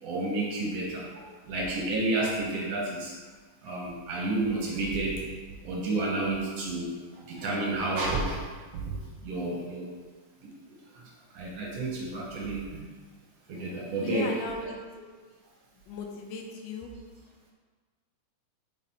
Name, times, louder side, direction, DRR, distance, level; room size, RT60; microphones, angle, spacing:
voice 1, 0.0-3.1 3.6-5.2 5.6-8.5 8.7-9.0 9.2-9.9 10.9-11.1 11.3-12.7 13.5-14.3, right 2 dB, 65° right, -2 dB, 1.7 m, -30 dB
voice 2, 13.9-14.8 15.9-16.9, left 4 dB, 80° left, 2 dB, 2.3 m, -36 dB
5.9 x 4.1 x 4.2 m, 1.5 s
omnidirectional pair, 3.8 m